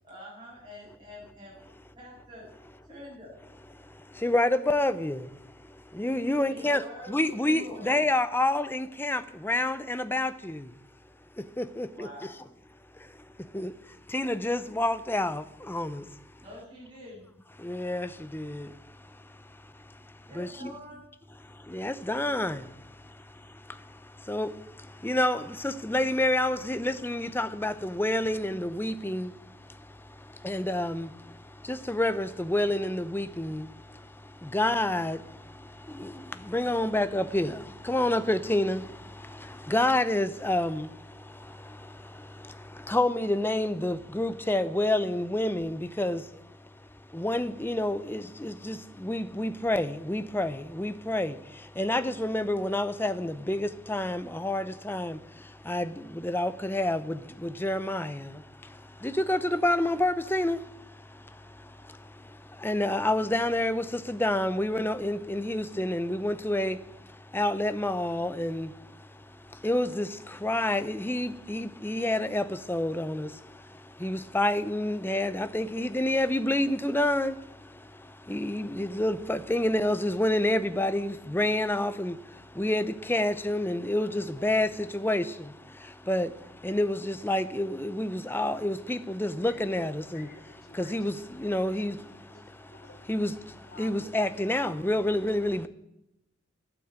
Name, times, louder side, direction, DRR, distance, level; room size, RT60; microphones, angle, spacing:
voice 1, 0.0-1.5 1.9-2.4 2.8-3.4 6.5-7.9 11.9-12.4 16.4-17.3 20.3-21.1, left 1 dB, 25° right, 7.3 m, -46 dB
voice 2, 3.7-10.7 11.4-12.1 12.9-16.2 17.6-20.0 20.3-20.7 21.4-46.4 47.1-90.3 90.7-92.0 92.4-92.8 93.1-95.7, left 1 dB, 10° left, 0.6 m, -29 dB
voice 3, 83.3-85.3 89.2-91.2 91.7-91.9 92.3-93.3 93.7-95.4, left 2 dB, 50° left, 2.4 m, -52 dB
12.0 x 8.8 x 9.0 m
head